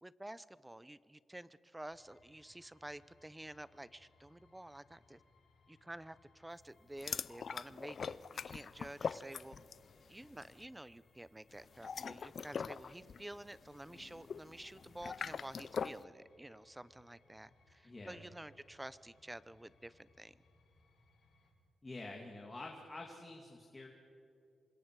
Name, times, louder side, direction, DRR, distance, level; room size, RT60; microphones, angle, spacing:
voice 1, 0.0-5.2 5.7-9.6 10.1-20.4, right 1 dB, 10° right, 17 dB, 0.6 m, -50 dB
sound 1, 1.9-21.5, left 3 dB, 80° left, 6.2 m, -70 dB
sound 2, 7.0-9.9 10.2-10.5 11.7-16.0, left 6 dB, 55° left, 0.4 m, -42 dB
voice 2, 17.8-18.2 21.8-23.9, left 2 dB, 20° left, 0 dB, 2.4 m, -48 dB
27.5 x 25.0 x 4.8 m, 2.7 s
wide cardioid pair, 120°, 0 cm